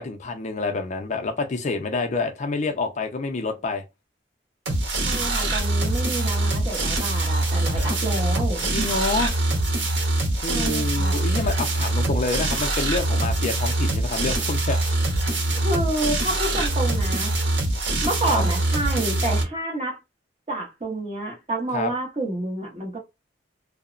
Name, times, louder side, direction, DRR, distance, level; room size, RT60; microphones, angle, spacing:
voice 1, 0.0-3.8 7.8-7.9 8.7-9.3 10.4-15.0 18.3-18.4 21.7-21.9, left 3 dB, 40° left, 0.4 m, -27 dB
sound 1, 4.7-19.4, right 2 dB, 90° right, 0.9 m, -24 dB
voice 2, 5.0-8.8 10.5-11.3 15.5-17.3 18.0-20.0 20.5-23.0, right 2 dB, 35° right, 1.0 m, -29 dB
2.7 x 2.0 x 2.4 m
head